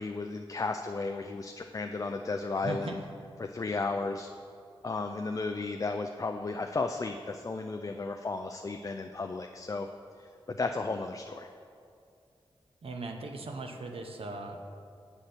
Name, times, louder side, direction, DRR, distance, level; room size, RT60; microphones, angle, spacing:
voice 1, 0.0-3.0 3.4-4.3 4.8-9.9 10.2-11.5, left 3 dB, 35° left, 5 dB, 0.3 m, -34 dB
voice 2, 2.6-3.0 12.8-14.6, right 3 dB, 75° right, 3 dB, 0.7 m, -38 dB
7.7 x 4.2 x 6.5 m, 2.4 s
wide cardioid pair, 70°, 10 cm